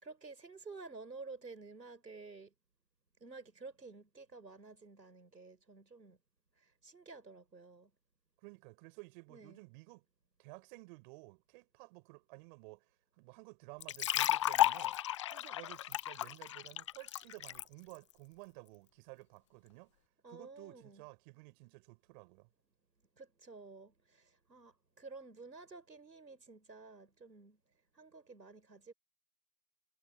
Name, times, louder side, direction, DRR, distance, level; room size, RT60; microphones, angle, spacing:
voice 1, 0.0-2.5 3.2-6.2 6.6-7.9 9.3-9.6 20.2-21.1 23.2-27.6 27.9-28.9, right 3 dB, 90° right, 5.7 m, -52 dB
voice 2, 8.4-10.0 10.4-12.9 13.2-15.0 15.2-19.9 20.3-22.5, right 29 dB, 30° right, 5.0 m, -54 dB
sound 1, 13.8-17.6, left 12 dB, 20° left, 0.6 m, -33 dB
figure-of-eight pair, 135°, 50 cm